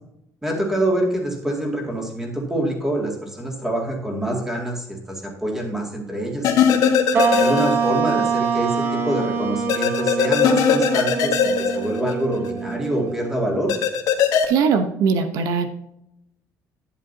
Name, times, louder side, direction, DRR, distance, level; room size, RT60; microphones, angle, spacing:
voice 1, 0.4-6.5 7.3-13.7, right 1 dB, 5° right, 0 dB, 2.2 m, -26 dB
sound 1, 6.4-8.1 8.4-8.5 9.7-12.5 13.7-14.4, left 7 dB, 65° left, 1.4 m, -19 dB
sound 2, 7.1-13.8, right 5 dB, 35° right, 0.9 m, -25 dB
voice 2, 14.5-15.7, right 6 dB, 70° right, 7 dB, 0.9 m, -20 dB
11.5 x 10.0 x 2.8 m, 0.79 s
cardioid pair, 170°, 6 cm